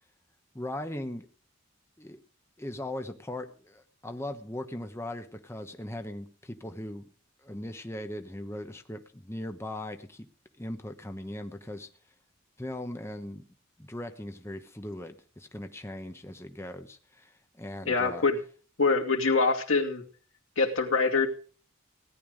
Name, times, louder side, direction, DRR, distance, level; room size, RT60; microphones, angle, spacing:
voice 1, 0.5-1.3 2.0-2.2 2.6-7.1 7.4-10.3 10.6-11.9 12.6-13.5 13.8-18.2, left 1 dB, 15° left, 6 dB, 1.1 m, -39 dB
voice 2, 17.9-18.4 18.8-20.0 20.6-21.3, left 4 dB, 85° left, 4 dB, 2.5 m, -24 dB
17.5 x 11.0 x 5.1 m, 0.39 s
head